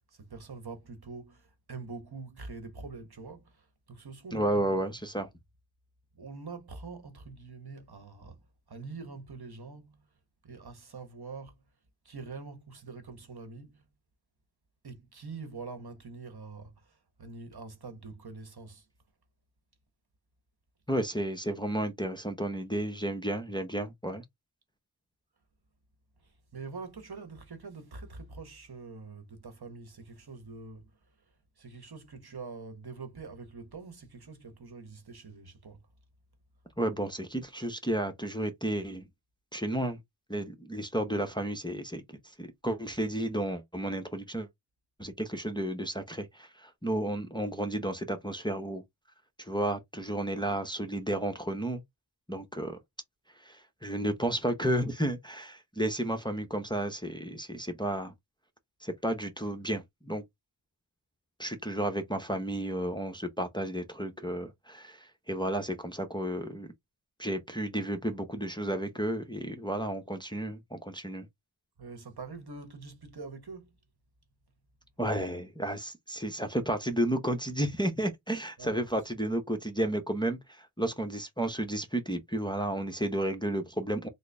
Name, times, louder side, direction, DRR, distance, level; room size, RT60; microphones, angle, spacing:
voice 1, 0.1-4.8 6.1-10.1 10.4-11.6 12.0-13.8 14.8-18.9 26.2-31.1 31.6-35.8 71.8-73.8 78.6-78.9, right 4 dB, 55° right, 1.0 m, -45 dB
voice 2, 4.3-5.3 20.9-24.2 36.8-39.1 39.5-40.0 40.3-42.0 42.4-44.5 45.0-48.8 49.4-51.8 52.3-52.8 53.4-58.1 58.8-60.2 61.4-66.7 67.2-71.3 75.0-84.1, right 1 dB, 10° left, 0.7 m, -32 dB
3.8 x 2.0 x 3.3 m
wide cardioid pair, 45°, 46 cm